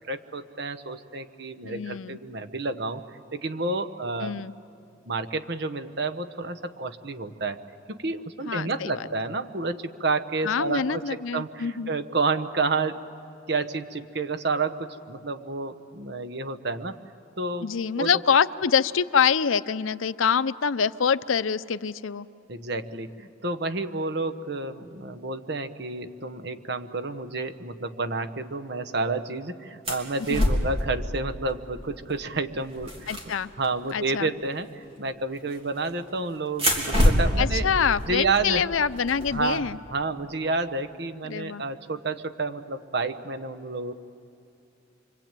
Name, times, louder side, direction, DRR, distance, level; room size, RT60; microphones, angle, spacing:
voice 1, 0.1-3.0 3.3-4.3 5.1-7.6 7.9-13.0 13.5-17.0 17.4-17.7 18.0-18.1 22.5-33.1 33.6-37.7 38.1-38.6 39.3-43.9, right 3 dB, 55° right, 8 dB, 1.1 m, -30 dB
voice 2, 1.6-2.2 4.2-4.5 8.5-9.1 10.4-11.9 17.6-22.3 30.3-30.5 33.1-33.5 33.9-34.3 37.4-39.8 41.3-41.6, left 6 dB, 85° left, 14 dB, 0.6 m, -25 dB
sound 1, 29.9-30.9 32.0-32.2 32.4-33.9 35.4-35.9 36.5-39.6, equal, 30° right, 3.2 m, -26 dB
26.0 x 24.0 x 9.1 m, 2.6 s
head